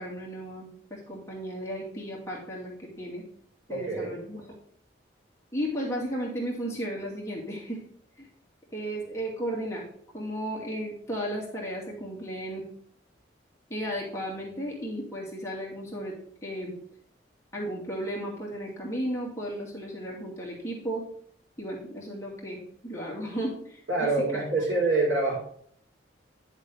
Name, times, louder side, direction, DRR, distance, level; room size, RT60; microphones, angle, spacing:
voice 1, 0.0-3.2 3.7-4.6 5.5-7.8 8.2-8.3 8.7-9.9 10.1-12.7 13.7-16.1 16.4-16.8 17.5-21.0 21.6-24.1, equal, 15° left, -4 dB, 2.4 m, -34 dB
voice 2, 3.7-4.1 23.9-25.4, right 3 dB, 80° right, -3 dB, 4.4 m, -25 dB
9.8 x 7.3 x 3.4 m, 0.62 s
head